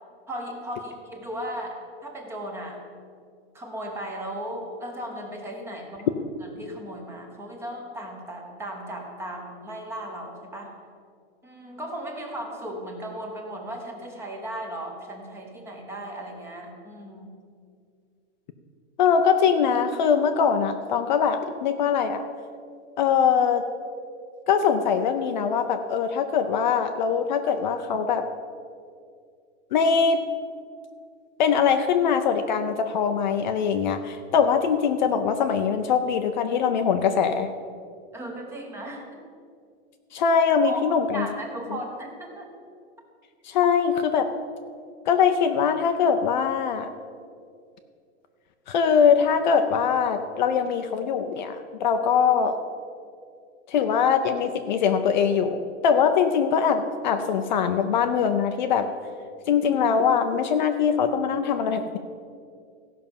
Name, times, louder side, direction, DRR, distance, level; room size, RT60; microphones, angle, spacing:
voice 1, 0.3-2.8 3.5-10.7 11.4-17.3 38.1-39.2 40.6-42.5, right 1 dB, 5° right, 1 dB, 0.9 m, -36 dB
voice 2, 19.0-22.2 23.0-23.6 24.5-28.3 29.7-30.2 31.4-37.5 40.1-41.3 43.4-44.3 45.1-46.9 48.7-52.6 53.7-58.9 59.5-62.0, left 6 dB, 40° left, 7 dB, 0.5 m, -22 dB
15.0 x 5.8 x 7.0 m, 2.2 s
supercardioid pair, 175°, 35 cm